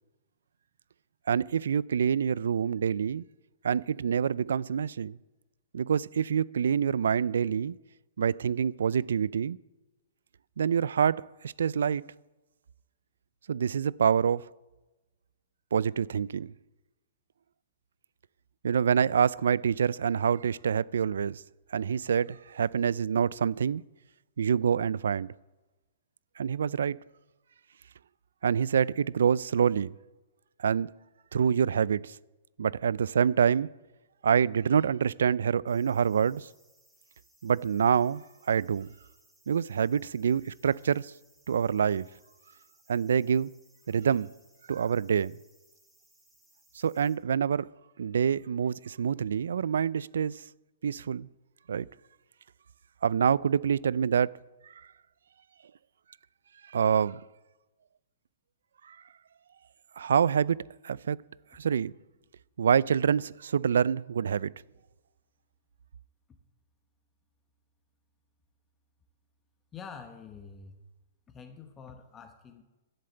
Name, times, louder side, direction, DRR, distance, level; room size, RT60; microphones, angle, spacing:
voice 1, 1.3-3.2 3.6-5.2 5.7-7.8 8.2-9.6 10.6-12.0 13.5-14.5 15.7-16.5 18.6-21.4 21.7-23.8 24.4-25.3 26.4-27.0 28.4-30.0 30.6-30.9 31.3-32.2 32.6-33.7 34.2-36.5 37.4-38.9 39.5-41.1 41.5-42.1 42.9-43.5 43.9-44.3 44.7-45.4 46.7-47.7 48.0-50.4 50.8-51.3 51.7-51.9 53.0-54.4 54.6-54.9 56.7-57.2 58.9-59.0 60.0-61.2 61.5-61.9 62.6-64.5, right 7 dB, 85° right, 0.3 m, -26 dB
sound 1, 35.7-47.2, right 1 dB, 5° right, 2.7 m, -65 dB
voice 2, 69.7-70.8 71.3-72.6, left 6 dB, 20° left, 1.0 m, -46 dB
11.0 x 7.7 x 7.9 m
hypercardioid pair, 150°, 0 cm